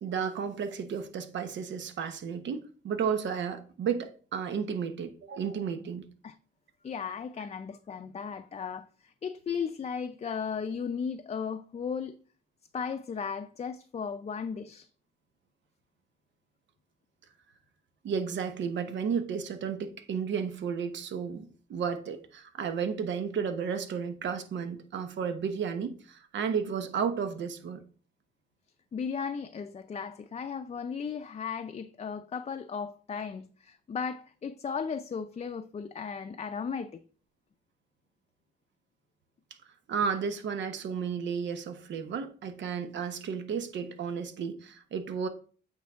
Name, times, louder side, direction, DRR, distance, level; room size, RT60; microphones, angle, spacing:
voice 1, 0.0-6.1 18.0-27.8 39.9-45.3, right 6 dB, 75° right, 1.0 m, -33 dB
voice 2, 6.8-12.2 12.7-14.9 28.9-36.9, left 6 dB, 35° left, 0.5 m, -36 dB
8.3 x 4.6 x 3.6 m
cardioid pair, 90°, 19 cm